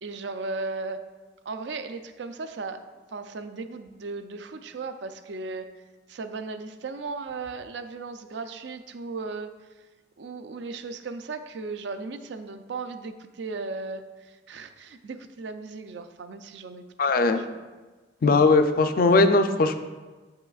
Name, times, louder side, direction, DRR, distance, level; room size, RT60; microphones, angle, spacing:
voice 1, 0.0-1.0 1.5-2.8 3.1-5.7 6.1-9.5 10.2-16.8 17.2-17.7, right 3 dB, 70° right, 9 dB, 0.4 m, -36 dB
voice 2, 17.0-17.4 18.2-19.7, left 3 dB, 50° left, 8 dB, 0.4 m, -19 dB
8.3 x 5.7 x 2.4 m, 1.3 s
head